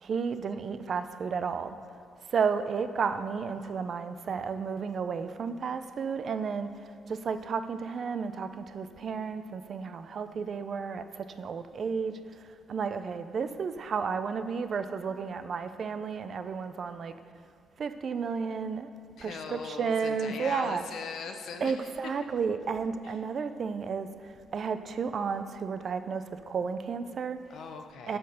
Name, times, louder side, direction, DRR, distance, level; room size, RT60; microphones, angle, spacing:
voice 1, 0.0-1.8 2.3-6.7 7.1-12.2 12.7-17.1 17.8-18.9 19.2-20.8 21.6-24.1 24.5-27.4 28.1-28.2, right 5 dB, 50° right, 10 dB, 0.5 m, -32 dB
voice 2, 19.2-22.1 23.0-23.2 27.5-28.2, left 6 dB, 70° left, 5 dB, 0.9 m, -40 dB
12.0 x 4.4 x 6.4 m, 2.4 s
cardioid pair, 90°, 0 cm